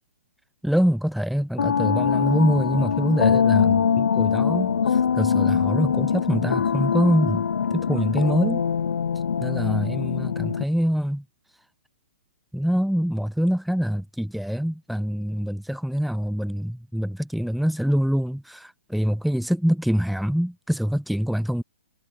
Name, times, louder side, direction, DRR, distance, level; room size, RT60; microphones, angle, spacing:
voice 1, 0.6-8.6 9.4-11.2 12.5-21.6, equal, ahead, 1.3 m, -25 dB
sound 1, 1.6-10.6, left 7 dB, 85° left, 3.1 m, -23 dB
hypercardioid pair, 180°, 7 cm